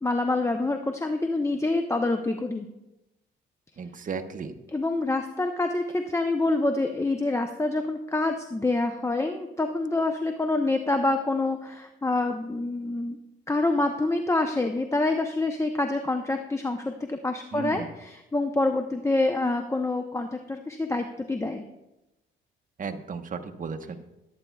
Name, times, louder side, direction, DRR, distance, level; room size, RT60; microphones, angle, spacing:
voice 1, 0.0-2.7 4.7-13.2 13.5-21.7, left 2 dB, 15° left, 5 dB, 0.8 m, -26 dB
voice 2, 3.8-4.5 17.5-17.9 22.8-24.0, right 5 dB, 40° right, 5 dB, 1.1 m, -34 dB
21.5 x 9.1 x 2.4 m, 0.96 s
cardioid pair, 90°, 20 cm